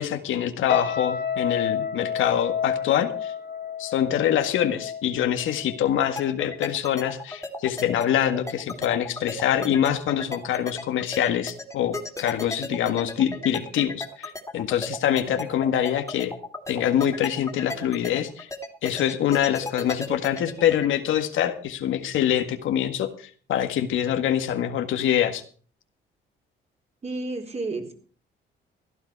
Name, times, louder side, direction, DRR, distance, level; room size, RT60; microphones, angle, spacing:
voice 1, 0.0-3.3 3.8-16.3 16.7-18.5 18.8-25.4, left 10 dB, 80° left, 7 dB, 1.7 m, -25 dB
sound 1, 0.7-6.0 6.3-6.6, left 7 dB, 55° left, 2.4 m, -30 dB
sound 2, 6.2-20.9, left 2 dB, 15° left, 2.7 m, -34 dB
voice 2, 27.0-27.9, right 3 dB, 35° right, 3 dB, 4.1 m, -31 dB
15.5 x 12.0 x 4.7 m, 0.42 s
cardioid pair, 90°, 20 cm